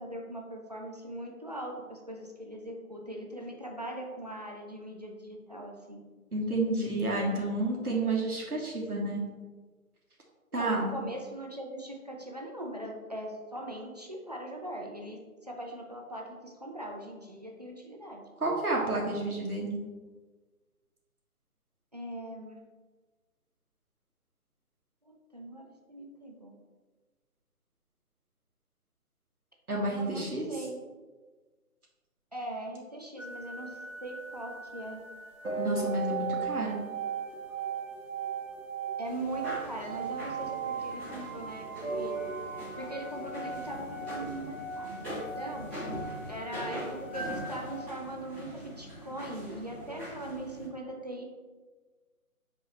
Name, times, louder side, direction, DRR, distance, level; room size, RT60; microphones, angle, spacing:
voice 1, 0.0-6.0 10.5-18.2 21.9-22.6 25.0-26.5 29.9-30.8 32.3-35.0 39.0-42.1 42.8-45.7 46.3-51.2, right 1 dB, 30° right, 0 dB, 0.5 m, -40 dB
voice 2, 6.3-9.2 10.5-11.0 18.4-19.8 29.7-30.5 35.6-36.8, right 2 dB, 85° right, -2 dB, 1.7 m, -30 dB
sound 1, 33.2-47.8, right 5 dB, 60° right, 1.4 m, -38 dB
sound 2, 39.1-50.7, right 1 dB, 5° left, 1.6 m, -42 dB
6.4 x 4.6 x 3.2 m, 1.3 s
figure-of-eight pair, 150°, 44 cm